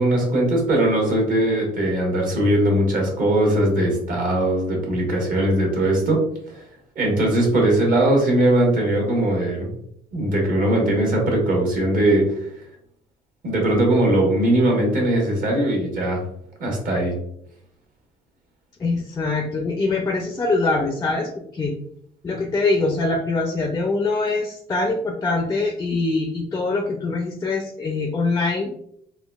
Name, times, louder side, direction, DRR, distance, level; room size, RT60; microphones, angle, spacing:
voice 1, 0.0-6.2 6.5-6.6 6.9-9.7 10.1-12.3 13.4-16.2 16.6-17.1, right 1 dB, 55° right, -1 dB, 1.2 m, -20 dB
voice 2, 18.8-21.8 22.2-28.7, left 3 dB, 20° left, 4 dB, 0.4 m, -23 dB
3.8 x 2.3 x 2.3 m, 0.71 s
cardioid pair, 110°, 17 cm